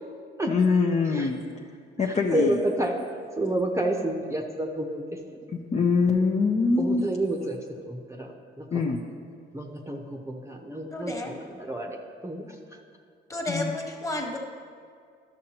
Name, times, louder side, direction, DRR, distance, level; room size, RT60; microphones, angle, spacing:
voice 1, 0.5-1.4 2.0-2.6 5.5-7.0 8.7-9.0 13.5-13.7, left 4 dB, 35° left, 0 dB, 0.6 m, -23 dB
voice 2, 2.1-2.9 3.4-5.4 6.8-7.6 7.8-8.8 9.5-12.0 12.2-12.6, right 1 dB, 15° right, 2 dB, 0.8 m, -30 dB
voice 3, 10.9-11.3 13.3-14.4, left 2 dB, 15° left, 1 dB, 1.3 m, -31 dB
12.0 x 6.4 x 2.9 m, 2.2 s
cardioid pair, 90°, 20 cm